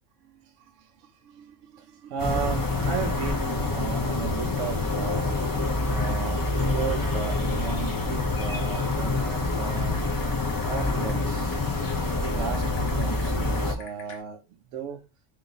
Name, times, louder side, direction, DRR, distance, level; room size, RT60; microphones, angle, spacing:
voice 1, 0.2-10.0 10.6-11.6 12.1-15.1, right 7 dB, 75° right, 0.9 m, -35 dB
sound 1, 2.2-13.7, left 2 dB, 30° left, 0.4 m, -27 dB
Typing, 9.4-14.2, left 3 dB, 55° left, 1.4 m, -48 dB
3.3 x 2.6 x 3.8 m
omnidirectional pair, 1.3 m